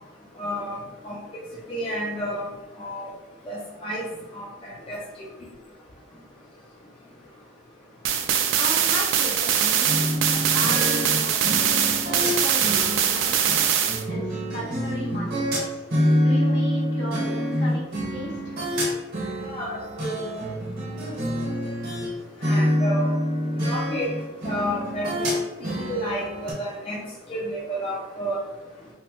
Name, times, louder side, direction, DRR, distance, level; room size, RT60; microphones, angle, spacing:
voice 1, 0.4-0.8 1.0-1.2 1.7-2.5 2.8-3.1 3.5-4.1 4.3-4.4 4.9-5.0 19.4-20.5 22.4-23.1 23.6-24.1 24.4-25.3 25.6-27.0 27.3-28.4, equal, 30° left, -5 dB, 0.4 m, -30 dB
sound 1, 8.0-14.0, right 8 dB, 85° right, 0.3 m, -22 dB
voice 2, 8.5-13.6 14.1-17.8 18.1-18.6, equal, 65° left, -5 dB, 1.0 m, -36 dB
sound 2, 9.8-22.1 22.4-26.5, equal, 50° right, 0.9 m, -26 dB
2.9 x 2.1 x 3.0 m, 1.0 s
head